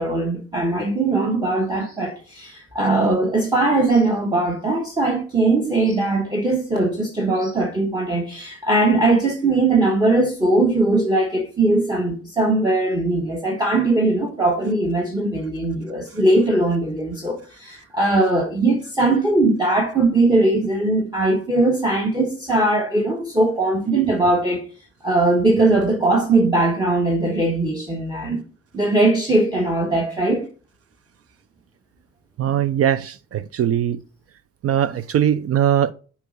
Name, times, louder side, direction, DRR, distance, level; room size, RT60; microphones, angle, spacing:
voice 1, 0.0-24.6 25.0-28.4 28.7-30.5, right 2 dB, 15° right, 1.3 m, -20 dB
voice 2, 32.4-34.0 34.6-35.9, right 10 dB, 50° right, 0.5 m, -20 dB
6.6 x 4.3 x 5.1 m
cardioid pair, 90°, 30 cm